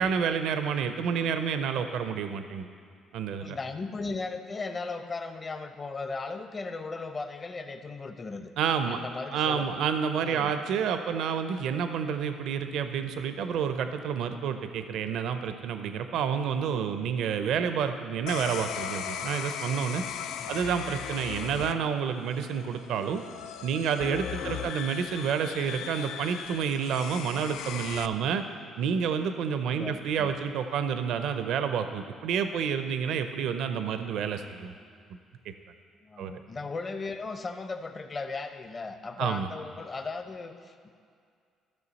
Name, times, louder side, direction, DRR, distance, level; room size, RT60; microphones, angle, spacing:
voice 1, 0.0-2.7 3.1-3.6 8.6-9.0 9.3-20.0 20.5-23.2 23.6-28.4 28.8-34.7 36.2-36.3 39.2-39.5, right 7 dB, 75° right, 8 dB, 0.5 m, -29 dB
voice 2, 3.4-8.5 8.9-9.7 10.2-10.5 20.4-20.7 21.5-21.7 24.4-24.5 29.6-30.3 36.0-40.9, left 3 dB, 30° left, 7 dB, 0.7 m, -37 dB
sound 1, 18.3-28.1, left 9 dB, 80° left, 0.3 m, -38 dB
14.0 x 6.2 x 4.0 m, 2.2 s
cardioid pair, 105°, 0 cm